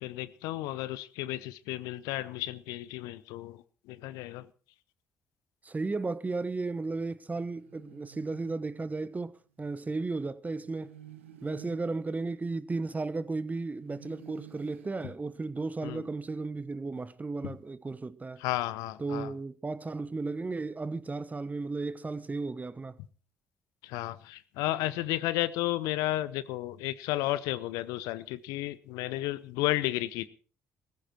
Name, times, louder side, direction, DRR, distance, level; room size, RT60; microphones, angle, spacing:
voice 1, 0.0-4.5 15.8-16.0 17.4-17.6 18.4-19.3 23.8-30.3, left 16 dB, 70° left, 0.7 m, -33 dB
voice 2, 5.6-10.9 11.4-18.4 19.0-23.0, right 3 dB, 25° right, 1.1 m, -34 dB
sound 1, 7.3-9.4 10.6-13.3 13.8-16.0, right 10 dB, 85° right, 1.3 m, -54 dB
17.5 x 15.0 x 4.4 m
figure-of-eight pair, 50°, 7 cm